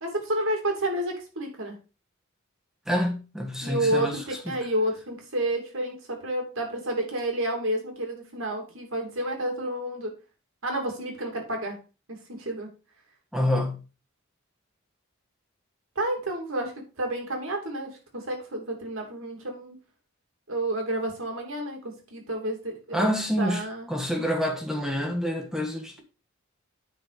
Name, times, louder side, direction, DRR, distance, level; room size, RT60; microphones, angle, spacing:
voice 1, 0.0-1.8 3.6-10.1 10.6-11.8 12.1-12.7 15.9-19.8 20.5-23.1 23.4-23.9, right 1 dB, 75° right, 2.9 m, -30 dB
voice 2, 2.9-4.2 13.3-13.8 22.9-26.0, equal, ahead, 1.4 m, -27 dB
9.4 x 4.2 x 5.0 m
head